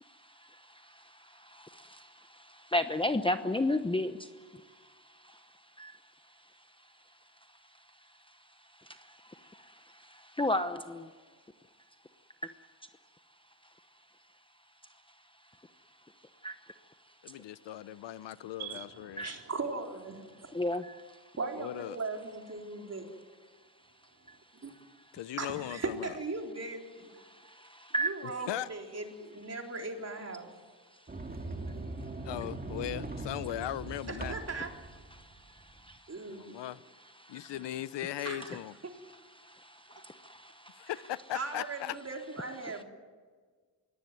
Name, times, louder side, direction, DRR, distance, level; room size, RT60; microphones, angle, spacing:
voice 1, 2.7-4.1 5.8-5.9 10.4-11.0 16.4-16.5 19.2-19.3 20.5-20.8 27.9-28.1, left 1 dB, 10° left, 0.9 m, -29 dB
voice 2, 17.2-19.3 21.6-22.0 25.1-26.1 28.5-28.7 32.2-34.4 36.3-36.8 37.3-38.7 40.8-42.0, left 13 dB, 85° left, 0.8 m, -38 dB
voice 3, 18.6-20.5 21.4-23.1 24.6-24.7 25.4-27.1 28.0-30.5 34.1-34.7 36.1-36.6 38.2-38.6 38.8-38.9 41.3-42.8, right 3 dB, 35° right, 4.0 m, -38 dB
Sliding door, 31.1-35.9, right 2 dB, 20° right, 2.0 m, -40 dB
23.5 x 18.0 x 9.4 m
cardioid pair, 100°, 41 cm